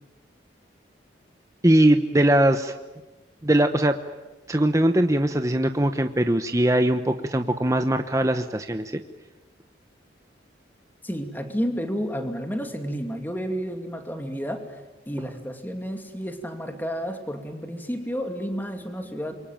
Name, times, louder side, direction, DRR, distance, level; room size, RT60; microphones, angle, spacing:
voice 1, 1.6-2.7 3.4-4.0 4.5-9.0, right 1 dB, 15° right, 7 dB, 0.9 m, -21 dB
voice 2, 11.0-14.8 15.1-19.4, equal, 10° left, 5 dB, 2.6 m, -31 dB
27.0 x 24.0 x 9.1 m, 1.1 s
head